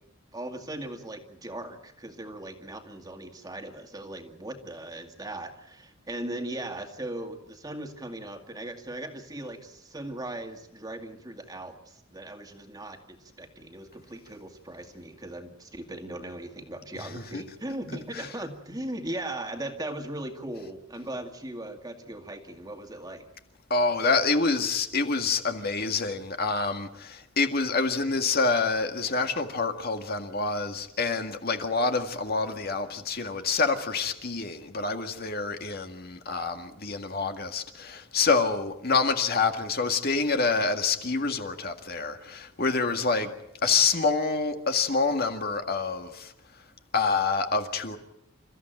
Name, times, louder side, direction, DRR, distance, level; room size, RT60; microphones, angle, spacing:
voice 1, 0.3-23.2, right 1 dB, 20° right, 2.2 m, -38 dB
voice 2, 17.0-17.4 18.1-18.3 23.7-43.3 43.6-46.3 46.9-48.0, left 4 dB, 45° left, 2.0 m, -27 dB
29.0 x 14.5 x 9.1 m
head